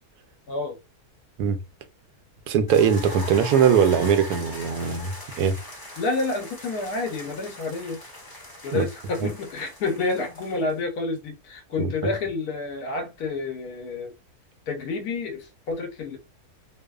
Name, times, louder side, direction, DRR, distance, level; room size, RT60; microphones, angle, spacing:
voice 1, 2.5-5.6 8.7-8.9 9.2-9.3 11.8-11.9, right 7 dB, 85° right, 1.1 m, -21 dB
sound 1, 2.7-10.8, left 1 dB, 35° left, 0.3 m, -40 dB
voice 2, 6.0-8.0 8.6-14.1 14.7-16.2, left 3 dB, 80° left, 1.3 m, -29 dB
3.0 x 2.0 x 2.3 m
omnidirectional pair, 1.6 m